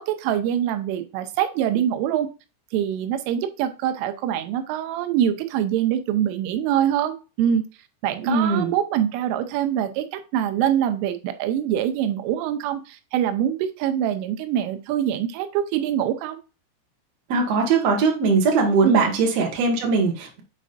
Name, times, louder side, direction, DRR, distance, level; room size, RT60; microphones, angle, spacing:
voice 1, 0.0-2.3 2.7-7.6 8.0-16.4 18.8-19.0, right 10 dB, 90° right, 8 dB, 3.3 m, -24 dB
voice 2, 8.2-8.7 17.3-20.4, right 4 dB, 65° right, 0 dB, 1.6 m, -20 dB
7.5 x 5.1 x 2.5 m, 0.32 s
omnidirectional pair, 5.6 m